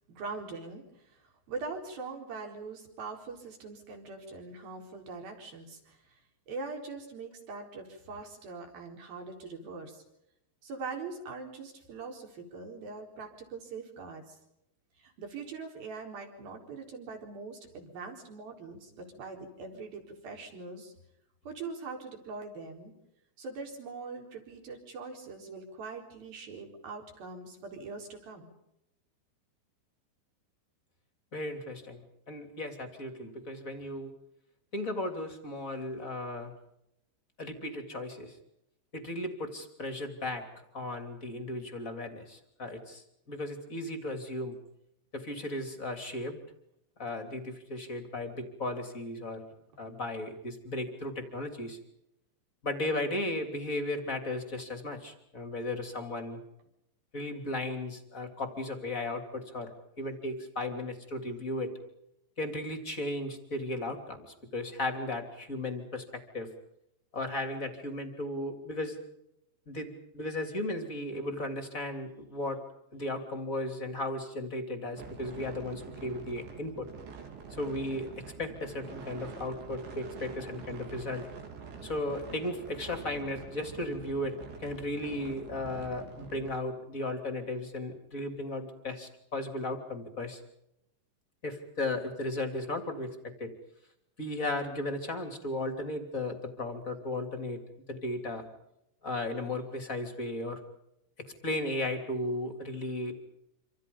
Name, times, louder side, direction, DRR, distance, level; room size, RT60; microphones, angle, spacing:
voice 1, 0.1-10.0 10.6-14.4 15.0-20.9 21.5-22.9 23.4-28.5, right 4 dB, 50° right, 3 dB, 5.8 m, -42 dB
voice 2, 31.3-34.1 34.7-36.5 37.4-38.4 38.9-40.4 40.7-44.6 45.1-46.4 47.0-49.4 49.8-51.8 52.6-56.4 57.1-61.7 62.4-66.5 67.1-69.0 69.7-72.6 72.9-76.9 77.5-81.3 81.8-90.4 91.4-93.5 94.2-97.6 97.9-98.4 99.0-100.6 101.4-103.1, left 1 dB, 20° left, 6 dB, 2.6 m, -35 dB
sound 1, 75.0-86.5, right 5 dB, 70° right, 5.7 m, -46 dB
27.0 x 27.0 x 5.5 m, 0.82 s
omnidirectional pair, 5.4 m